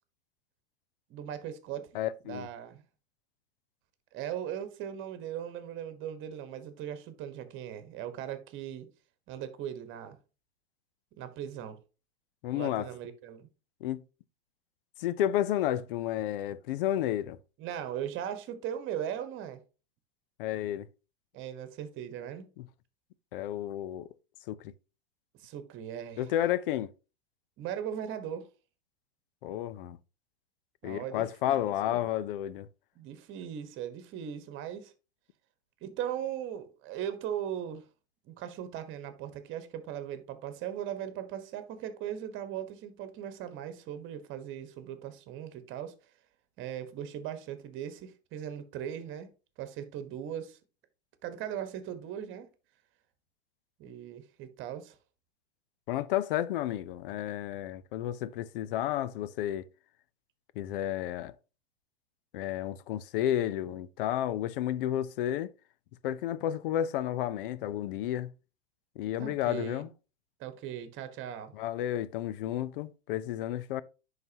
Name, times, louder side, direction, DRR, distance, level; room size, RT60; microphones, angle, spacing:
voice 1, 1.1-1.9 2.3-2.8 4.1-8.9 9.3-10.2 11.2-11.8 12.5-13.5 17.6-19.6 21.3-22.5 25.4-26.3 27.6-28.5 30.8-31.6 31.8-32.0 32.9-34.9 35.8-37.9 38.2-46.0 46.6-49.3 49.6-50.6 51.2-52.5 53.8-55.0 69.2-69.9 70.4-71.6, right 10 dB, 40° right, 1.3 m, -39 dB
voice 2, 1.9-2.5 12.4-12.9 13.8-14.0 15.0-17.4 20.4-20.9 22.6-22.7 23.3-24.1 24.5-24.7 26.2-26.9 29.4-30.0 30.8-32.7 55.9-59.7 60.6-61.3 62.3-65.5 66.0-68.3 69.0-69.9 71.5-73.8, left 12 dB, 60° left, 0.6 m, -31 dB
10.5 x 4.0 x 2.9 m
hypercardioid pair, 100°, 31 cm